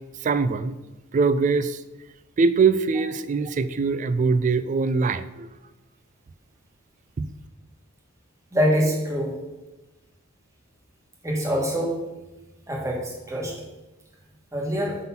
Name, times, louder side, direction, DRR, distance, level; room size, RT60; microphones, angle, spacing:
voice 1, 0.2-0.8 1.1-1.8 2.4-5.5 7.2-7.3, right 4 dB, 35° right, 12 dB, 0.3 m, -22 dB
voice 2, 8.5-9.4 11.2-11.9 12.7-13.5 14.5-15.0, equal, 15° right, -2 dB, 1.3 m, -24 dB
5.5 x 3.9 x 5.7 m, 1.1 s
head